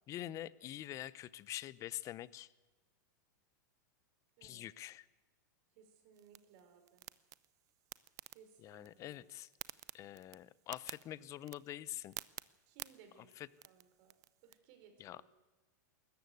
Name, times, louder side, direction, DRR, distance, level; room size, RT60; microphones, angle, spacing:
voice 1, 0.1-2.5 4.4-5.1 8.6-9.5 9.9-12.1 13.4-13.5 15.0-15.2, left 13 dB, 30° left, 20 dB, 0.7 m, -45 dB
voice 2, 5.7-7.1 8.3-9.3 12.7-13.4 13.6-14.1 14.4-15.3, right 7 dB, 50° right, 6 dB, 5.1 m, -63 dB
sound 1, 6.1-14.6, right 16 dB, 35° right, 0.6 m, -53 dB
20.0 x 14.0 x 9.4 m, 1.2 s
hypercardioid pair, 130°, 10 cm